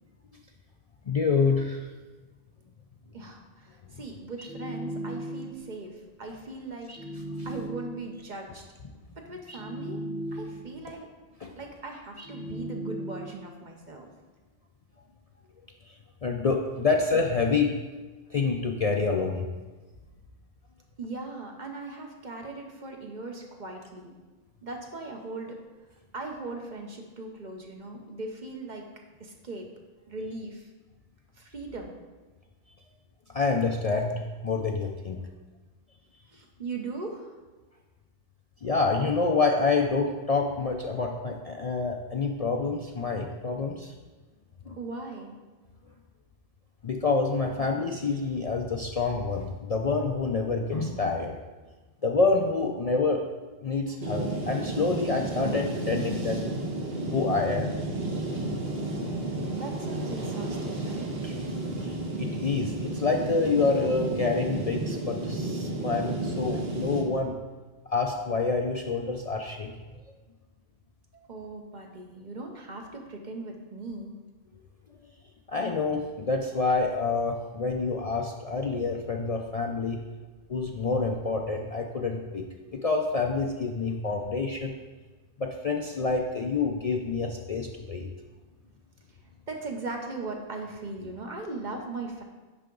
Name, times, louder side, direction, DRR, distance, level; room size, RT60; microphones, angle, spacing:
voice 1, 1.1-1.9 7.4-7.5 11.4-11.5 15.9-16.0 16.2-17.7 18.3-19.5 33.3-35.2 38.6-43.9 44.7-44.8 46.8-51.4 52.0-53.2 53.6-56.4 57.1-57.8 61.2-61.4 61.8-67.4 67.9-69.7 75.5-80.0 80.5-82.4 82.8-84.7 85.4-88.1, left 4 dB, 45° left, 2 dB, 0.5 m, -27 dB
voice 2, 3.1-6.9 7.4-8.7 9.2-10.0 10.3-11.1 11.6-14.1 21.0-24.1 24.6-25.6 26.1-28.9 29.2-29.7 30.1-30.7 31.4-32.0 36.3-37.3 44.8-45.3 59.0-61.1 71.1-74.1 89.5-92.2, right 3 dB, 45° right, 2 dB, 0.9 m, -39 dB
sound 1, 4.4-5.7 6.9-8.2 9.5-10.8 12.2-13.5, right 1 dB, 15° right, 0.8 m, -37 dB
sound 2, 54.0-67.0, right 2 dB, 65° right, 1.3 m, -32 dB
8.3 x 5.7 x 3.8 m, 1.3 s
omnidirectional pair, 1.1 m